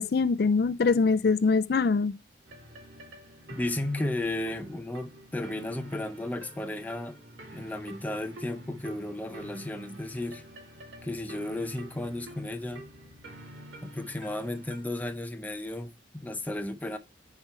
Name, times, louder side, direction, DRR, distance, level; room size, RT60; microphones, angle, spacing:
voice 1, 0.0-2.1, left 4 dB, 55° left, 0.4 m, -23 dB
sound 1, 2.4-14.9, right 1 dB, 75° right, 2.2 m, -47 dB
voice 2, 3.5-7.2 7.5-10.4 11.0-12.9 13.8-17.0, left 1 dB, 10° left, 0.6 m, -34 dB
9.4 x 4.4 x 4.5 m
head